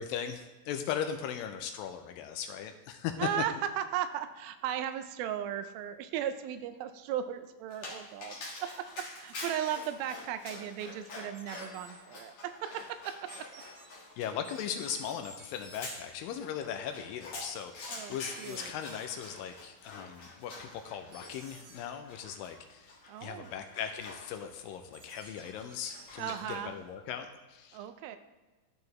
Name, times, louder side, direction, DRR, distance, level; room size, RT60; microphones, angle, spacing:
voice 1, 0.0-3.3 14.2-27.9, left 8 dB, 80° left, 7 dB, 2.2 m, -38 dB
voice 2, 3.2-13.5 17.9-18.7 23.1-23.6 26.2-26.8 27.7-28.2, right 10 dB, 85° right, 10 dB, 2.3 m, -36 dB
Dog, 7.7-26.8, left 2 dB, 50° left, 2.1 m, -47 dB
sound 1, 11.3-11.9 13.3-13.9 14.4-16.0 18.3-19.1 21.1-21.8 24.9-26.3, right 3 dB, 55° right, 2.0 m, -52 dB
13.5 x 4.6 x 3.1 m, 1.3 s
omnidirectional pair, 4.3 m